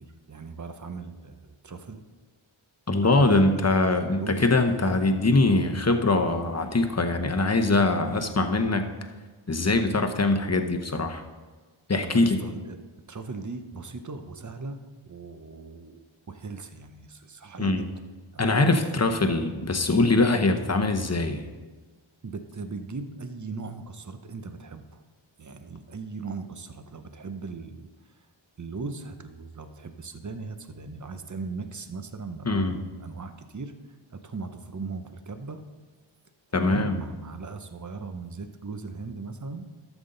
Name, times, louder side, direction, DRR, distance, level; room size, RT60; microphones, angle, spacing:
voice 1, 0.0-2.0 3.0-3.7 4.1-4.4 12.0-12.8 13.1-17.9 18.3-18.6 22.2-25.0 25.4-27.9 28.6-33.7 34.1-35.6 36.5-39.7, right 4 dB, 35° right, 9 dB, 0.8 m, -38 dB
voice 2, 2.9-8.9 9.5-11.2 11.9-12.4 17.6-17.9 18.4-21.4 32.4-32.7 36.5-37.0, left 2 dB, 30° left, 6 dB, 0.9 m, -23 dB
12.5 x 7.1 x 3.9 m, 1.4 s
wide cardioid pair, 55°, 50 cm